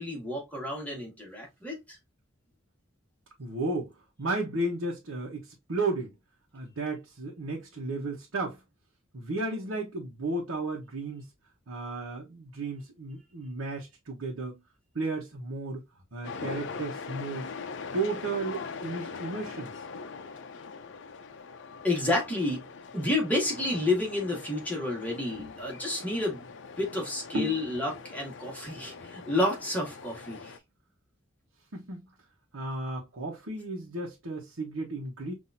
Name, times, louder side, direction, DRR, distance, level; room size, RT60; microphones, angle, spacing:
voice 1, 0.0-1.8 21.8-22.6 22.9-26.4 26.8-30.5, left 2 dB, 10° left, 1.7 m, -30 dB
voice 2, 3.4-3.9 4.2-6.1 6.5-8.6 9.1-11.3 11.7-14.6 14.9-15.8 16.1-17.5 17.9-19.7 25.3-25.6 27.3-27.6 31.7-32.1 32.5-35.3, right 2 dB, 80° right, 1.0 m, -34 dB
sound 1, 16.2-30.6, left 4 dB, 60° left, 0.6 m, -42 dB
5.7 x 2.7 x 2.6 m
head